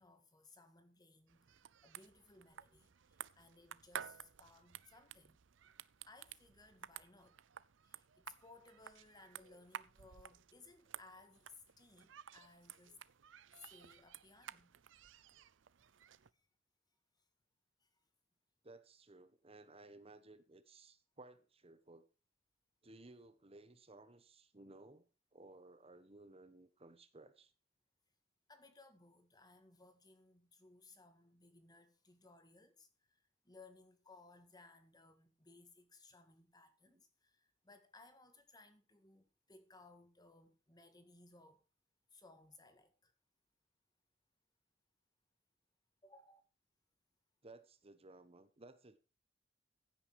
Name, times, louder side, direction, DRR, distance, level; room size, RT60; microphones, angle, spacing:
voice 1, 0.0-5.4 6.0-7.4 7.8-13.0 13.6-14.7 15.9-16.0 16.3-16.5 17.8-18.0 28.5-41.6 42.1-43.1 46.0-46.4, left 3 dB, 20° left, 1.9 m, -62 dB
sound 1, 1.3-16.3, right 9 dB, 80° right, 0.6 m, -54 dB
voice 2, 18.6-22.1 22.8-25.1 25.3-27.5 36.9-37.0 47.4-49.0, right 2 dB, 30° right, 1.1 m, -58 dB
16.0 x 8.9 x 4.8 m
head